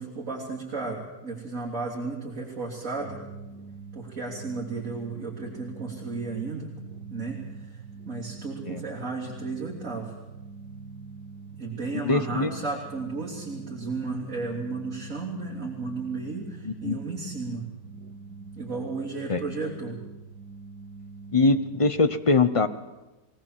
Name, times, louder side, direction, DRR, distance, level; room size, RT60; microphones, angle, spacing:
voice 1, 0.0-3.3 3.9-6.7 7.1-10.1 11.6-17.7 18.6-20.0, right 3 dB, 50° right, -5 dB, 3.6 m, -34 dB
sound 1, 3.0-21.9, right 4 dB, 85° right, 1.9 m, -44 dB
voice 2, 12.0-12.5 16.6-17.0 19.3-19.6 21.3-22.7, left 3 dB, 35° left, 10 dB, 0.5 m, -23 dB
22.0 x 18.5 x 7.5 m, 1.1 s
omnidirectional pair, 1.7 m